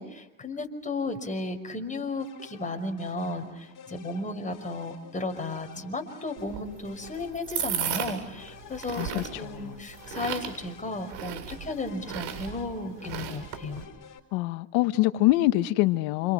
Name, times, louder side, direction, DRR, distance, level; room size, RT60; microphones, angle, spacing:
voice 1, 0.0-13.8, left 2 dB, 15° left, 5.7 m, -34 dB
sound 1, 2.2-14.2, left 8 dB, 40° left, 4.7 m, -51 dB
sound 2, 6.4-13.8, right 9 dB, 70° right, 7.7 m, -36 dB
voice 2, 9.0-9.8 14.3-16.3, left 17 dB, 85° left, 1.3 m, -25 dB
29.0 x 28.5 x 6.0 m
cardioid pair, 115°, 46 cm